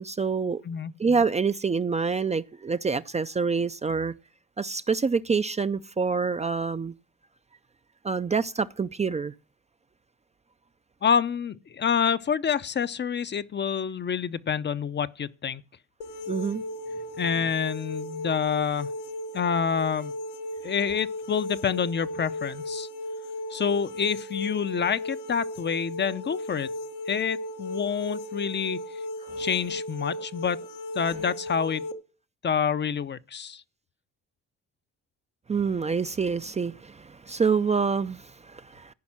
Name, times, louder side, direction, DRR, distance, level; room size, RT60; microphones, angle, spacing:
voice 1, 0.0-0.6 1.0-4.1 4.6-6.9 8.0-9.3 16.3-16.6 29.3-29.5 35.5-38.9, right 5 dB, 20° right, 0.5 m, -27 dB
voice 2, 11.0-15.6 17.2-18.9 19.3-20.1 20.6-22.9 23.5-26.7 27.1-28.8 29.4-30.6 30.9-31.8 32.4-33.6, left 7 dB, 35° left, 0.6 m, -27 dB
sound 1, 16.0-31.9, left 1 dB, 85° left, 1.2 m, -35 dB
14.5 x 5.3 x 7.3 m
cardioid pair, 90°, 30 cm